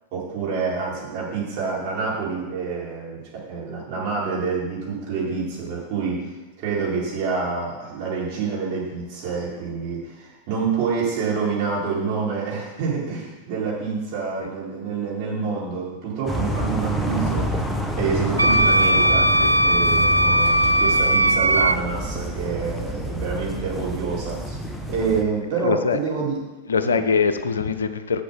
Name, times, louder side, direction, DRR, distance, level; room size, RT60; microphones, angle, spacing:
voice 1, 0.1-6.3 6.6-17.7 18.0-19.3 19.6-24.6 24.9-26.3 26.8-27.0, right 5 dB, 45° right, -5 dB, 4.3 m, -27 dB
sound 1, 16.3-25.2, right 1 dB, 5° left, 1.1 m, -28 dB
Wind instrument woodwind instrument, 18.4-21.8, right 1 dB, 80° right, 0.3 m, -18 dB
voice 2, 25.5-26.1 26.7-28.2, left 5 dB, 70° left, 10 dB, 0.6 m, -23 dB
7.8 x 7.5 x 7.6 m, 1.2 s
figure-of-eight pair, 90°, 0 cm